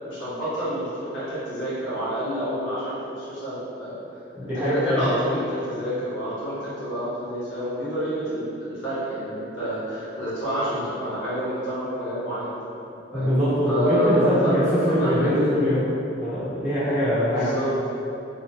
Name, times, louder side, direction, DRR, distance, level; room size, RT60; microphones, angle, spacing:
voice 1, 0.0-4.0 4.4-12.5 13.1-15.5 17.3-17.9, equal, 75° left, -12 dB, 0.9 m, -28 dB
voice 2, 4.4-5.2 13.1-15.9 16.2-17.5, equal, 10° right, -13 dB, 0.9 m, -22 dB
2.9 x 2.1 x 2.9 m, 2.8 s
head